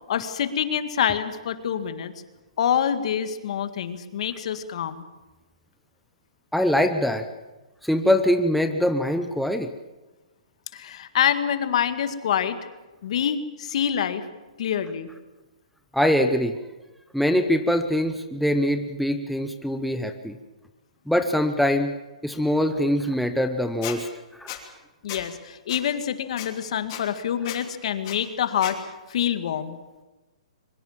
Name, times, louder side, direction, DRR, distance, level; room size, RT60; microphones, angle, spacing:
voice 1, 0.1-2.1 2.6-5.0 10.7-12.6 13.0-14.3 14.6-15.1 25.0-28.8 29.1-29.8, left 9 dB, 55° left, 10 dB, 1.9 m, -26 dB
voice 2, 6.5-7.3 7.8-9.7 15.9-16.6 17.1-20.4 21.1-21.9 22.2-24.1 24.4-24.5, left 1 dB, ahead, 6 dB, 0.7 m, -23 dB
Squeak, 23.8-24.0 24.5-24.6 25.1-25.2 25.7-25.8 26.4-26.5 26.9-27.0 27.5-27.6 28.0-28.2 28.6-28.7, left 14 dB, 35° left, 3.1 m, -34 dB
23.0 x 22.0 x 7.4 m, 1.1 s
hypercardioid pair, 155°, 4 cm